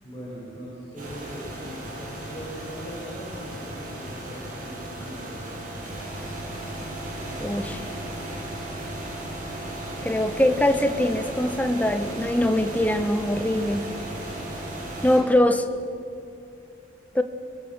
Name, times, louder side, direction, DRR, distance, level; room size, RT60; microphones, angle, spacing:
voice 1, 0.0-5.5 7.7-8.0, equal, 25° left, -7 dB, 6.8 m, -40 dB
sound 1, 1.0-15.2, right 1 dB, 45° right, 7.3 m, -35 dB
voice 2, 7.4-7.8 10.0-13.9 15.0-15.7 17.1-17.2, left 1 dB, 10° left, 8 dB, 1.0 m, -22 dB
25.5 x 21.0 x 6.7 m, 2.7 s
head